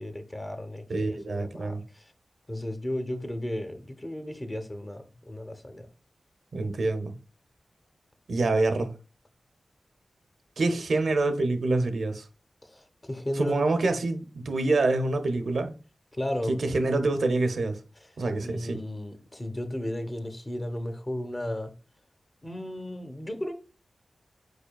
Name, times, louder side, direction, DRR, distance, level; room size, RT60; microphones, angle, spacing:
voice 1, 0.0-2.1 2.5-5.9 12.6-13.7 16.1-16.5 18.4-21.7 22.4-23.5, left 1 dB, 25° left, 0.8 m, -34 dB
voice 2, 0.9-1.8 6.5-7.1 8.3-8.9 10.6-12.2 13.4-15.7 16.5-17.8 18.2-18.8, right 2 dB, 80° right, 0.6 m, -26 dB
4.9 x 4.8 x 2.3 m
wide cardioid pair, 65°, 0 cm